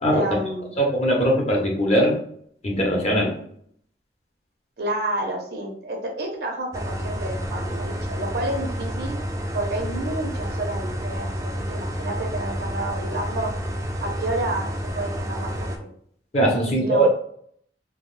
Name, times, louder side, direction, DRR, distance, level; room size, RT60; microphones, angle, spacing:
voice 1, 0.1-0.8 4.8-9.2 9.5-13.5 14.0-15.9 16.6-17.1, right 1 dB, 60° right, 1 dB, 0.7 m, -30 dB
voice 2, 0.8-2.2 2.6-3.3 16.3-17.1, right 1 dB, 40° left, -1 dB, 0.7 m, -20 dB
sound 1, 6.7-15.8, equal, 20° right, 0.3 m, -29 dB
3.4 x 2.0 x 2.5 m, 0.63 s
head